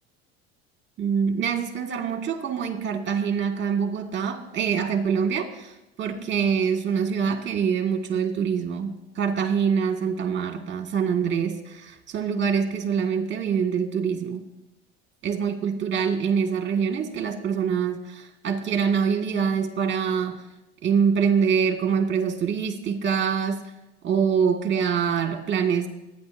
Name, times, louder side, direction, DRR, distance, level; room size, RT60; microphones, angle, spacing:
voice 1, 1.0-5.7 6.0-14.4 15.2-20.4 20.8-23.6 24.0-25.9, right 6 dB, 35° right, 4 dB, 2.0 m, -25 dB
23.0 x 10.0 x 2.7 m, 0.94 s
supercardioid pair, 105°, 30 cm